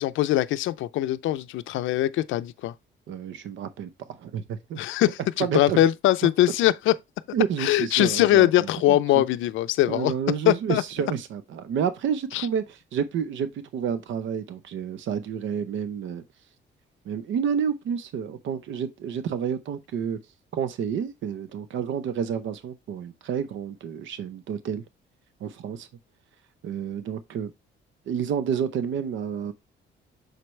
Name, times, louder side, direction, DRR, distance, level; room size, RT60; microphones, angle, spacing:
voice 1, 0.0-2.7 4.8-6.9 7.6-10.1 10.5-10.8 12.3-12.5, left 14 dB, 80° left, 0.5 m, -22 dB
voice 2, 3.1-4.8 5.4-5.8 7.3-9.2 9.9-16.2 17.1-20.2 20.5-24.8 25.4-25.9 26.6-27.5 28.1-29.5, right 7 dB, 70° right, 0.7 m, -29 dB
6.6 x 4.6 x 3.1 m
cardioid pair, 90°, 20 cm